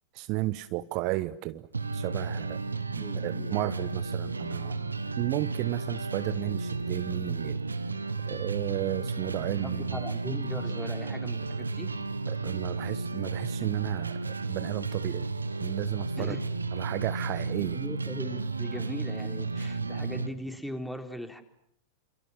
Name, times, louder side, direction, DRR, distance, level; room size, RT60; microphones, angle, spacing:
voice 1, 0.1-1.7 1.9-2.6 2.9-7.6 8.3-10.0 12.3-15.3 15.6-16.3 16.7-17.8, right 18 dB, 40° right, 14 dB, 1.1 m, -33 dB
sound 1, 1.7-20.3, right 3 dB, 80° right, 1.8 m, -33 dB
voice 2, 3.0-3.5 9.6-11.9 16.2-16.4 17.6-21.4, equal, ahead, 6 dB, 3.9 m, -39 dB
28.5 x 28.0 x 7.3 m, 0.70 s
figure-of-eight pair, 90°, 0 cm